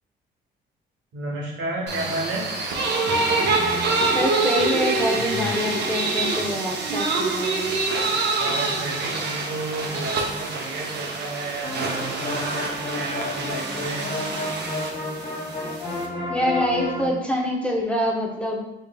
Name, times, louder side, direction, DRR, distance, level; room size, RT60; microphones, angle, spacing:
voice 1, 1.1-2.5 8.0-14.1, right 2 dB, 75° right, -2 dB, 1.0 m, -32 dB
sound 1, 1.9-16.1, right 3 dB, 60° right, 0.7 m, -26 dB
voice 2, 4.1-7.8 16.3-18.6, equal, 5° left, -2 dB, 0.6 m, -25 dB
sound 2, 11.6-17.1, left 2 dB, 45° left, 1.0 m, -31 dB
3.6 x 3.6 x 2.2 m, 0.89 s
cardioid pair, 90°, 20 cm